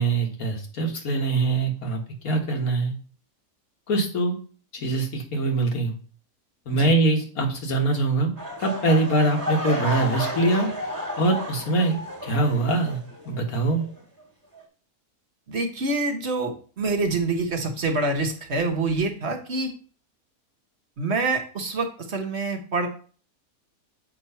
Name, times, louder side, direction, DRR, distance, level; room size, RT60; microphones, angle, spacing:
voice 1, 0.0-2.9 3.9-4.4 4.7-5.9 6.7-8.3 8.6-10.7 11.2-12.0 12.2-13.0 13.3-13.8, right 2 dB, 80° left, 3 dB, 1.8 m, -23 dB
sound 1, 8.4-13.4 13.7-14.0 14.5-14.6, equal, 15° right, 1.6 m, -32 dB
voice 2, 15.5-19.7 21.0-22.9, right 3 dB, 50° right, 3 dB, 1.2 m, -26 dB
7.5 x 3.0 x 5.5 m, 0.40 s
omnidirectional pair, 1.5 m